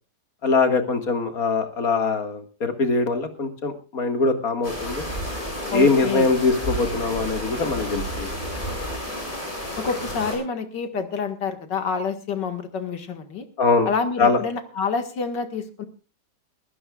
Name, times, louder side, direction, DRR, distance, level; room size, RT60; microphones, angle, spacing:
voice 1, 0.4-5.0 5.7-8.3 13.6-13.9 14.2-14.4, left 3 dB, 55° left, 6 dB, 2.5 m, -22 dB
sound 1, 4.6-10.4, equal, 25° left, 7.5 m, -31 dB
voice 2, 5.7-6.3 9.8-13.5 13.9-15.9, left 5 dB, 85° left, 7 dB, 2.5 m, -28 dB
23.0 x 15.5 x 2.4 m, 0.34 s
omnidirectional pair, 1.8 m